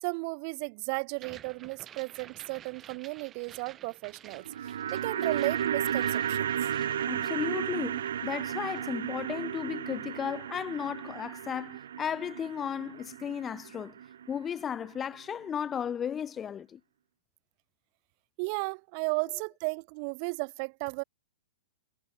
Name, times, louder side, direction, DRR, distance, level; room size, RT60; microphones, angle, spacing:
voice 1, 0.0-6.7 18.4-21.0, right 37 dB, 35° right, 0.9 m, -34 dB
sound 1, 1.1-7.7 7.9-8.9, right 10 dB, 20° right, 2.6 m, -52 dB
sound 2, 4.3-14.6 14.8-14.9, right 9 dB, 75° right, 1.0 m, -33 dB
voice 2, 7.1-13.9 14.3-16.8, left 8 dB, 15° left, 0.8 m, -35 dB
hypercardioid pair, 160°, 0 cm